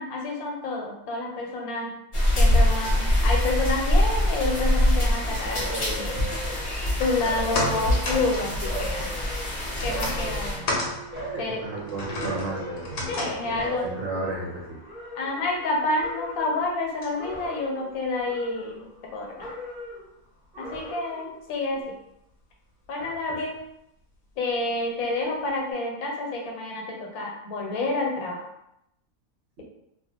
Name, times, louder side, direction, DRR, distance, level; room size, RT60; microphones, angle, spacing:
voice 1, 0.0-1.9 2.4-6.2 7.0-9.3 9.8-10.7 11.4-11.6 13.1-13.8 15.2-18.9 19.1-19.5 20.6-21.8 22.9-23.6 24.4-28.5, left 2 dB, 85° left, 0 dB, 1.1 m, -29 dB
sound 1, 2.1-10.6, left 1 dB, 35° left, 0.5 m, -24 dB
sound 2, 5.6-6.8 7.2-8.3 8.6-10.8 11.1-11.7 12.2-13.3 13.6-15.7 16.0-16.7 17.1-17.9 18.2-19.1 19.4-20.1 20.5-21.3 21.7-21.8, equal, 10° right, 0.7 m, -38 dB
sound 3, 6.8-19.2 19.5-19.6, left 1 dB, 65° left, 0.8 m, -36 dB
voice 2, 11.3-14.8 23.0-23.4 29.6-29.7, right 2 dB, 65° right, -3 dB, 0.7 m, -34 dB
2.4 x 2.3 x 2.8 m, 0.81 s
omnidirectional pair, 1.5 m